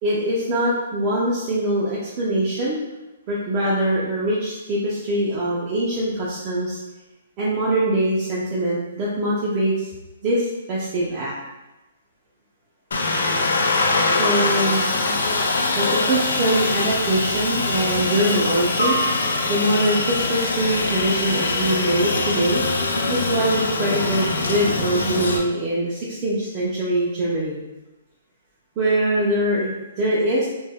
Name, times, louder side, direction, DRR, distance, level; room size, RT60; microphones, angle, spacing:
voice 1, 0.0-2.8 3.3-6.8 7.4-9.9 10.2-11.3 14.1-14.9 15.8-19.0 19.5-22.6 23.1-27.6 28.8-30.5, right 1 dB, 20° right, -7 dB, 0.3 m, -23 dB
Aircraft, 12.9-25.4, left 3 dB, 80° left, 0.4 m, -23 dB
2.2 x 2.0 x 3.4 m, 1.0 s
hypercardioid pair, 175°, 0 cm